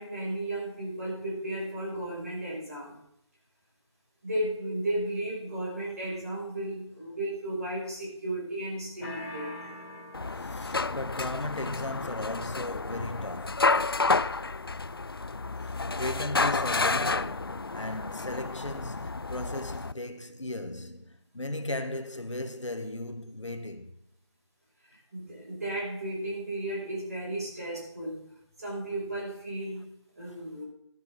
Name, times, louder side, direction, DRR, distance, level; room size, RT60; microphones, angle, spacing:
voice 1, 0.0-3.0 4.2-9.6 15.8-16.0 24.9-28.3 28.6-29.9 30.2-30.6, right 1 dB, 35° right, 6.0 m, -34 dB
sound 1, 9.0-10.9, left 1 dB, 30° left, 2.8 m, -43 dB
sound 2, 10.1-19.9, left 3 dB, 50° left, 0.4 m, -30 dB
voice 2, 10.4-13.8 16.0-23.9, left 1 dB, 90° left, 1.7 m, -36 dB
13.0 x 11.5 x 3.8 m
figure-of-eight pair, 170°, 15 cm